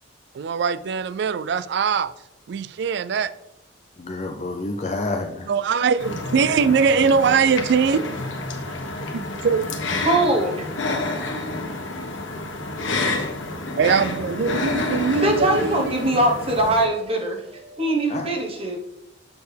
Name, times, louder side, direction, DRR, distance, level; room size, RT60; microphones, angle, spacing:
voice 1, 0.3-2.1 2.5-3.3 5.5-8.1 9.1-9.7 13.8-16.2, right 6 dB, 60° right, 0.3 m, -21 dB
voice 2, 4.0-5.5 18.1-18.3, left 2 dB, 35° left, 0.5 m, -28 dB
sound 1, 6.0-16.9, left 2 dB, 75° left, 1.2 m, -29 dB
voice 3, 10.0-10.7 11.6-11.7 15.2-18.8, right 1 dB, 30° right, 1.1 m, -22 dB
6.8 x 6.6 x 3.4 m
head